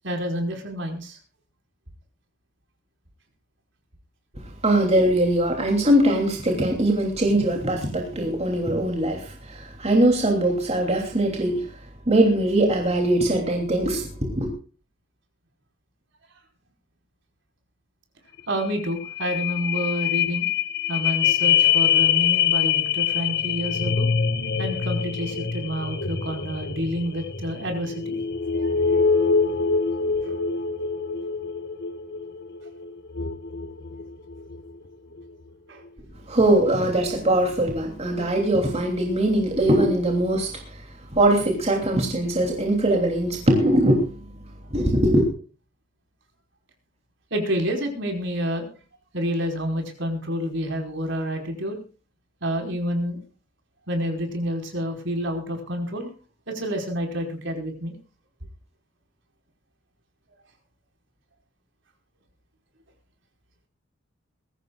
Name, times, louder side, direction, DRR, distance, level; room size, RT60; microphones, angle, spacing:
voice 1, 0.0-1.2 18.5-20.5 20.9-24.1 24.6-28.2 28.5-29.0 29.9-30.4 35.7-35.8 47.3-48.7 49.1-51.8 52.4-53.2 53.9-56.1 56.5-57.9, equal, 65° right, 5.0 m, -29 dB
voice 2, 4.3-11.8 12.1-14.5 36.3-44.2 44.7-45.3, right 1 dB, 35° right, 3.0 m, -21 dB
sound 1, 18.4-18.5 18.7-34.7 35.2-35.3, left 7 dB, 60° left, 1.6 m, -24 dB
21.5 x 15.5 x 2.4 m
head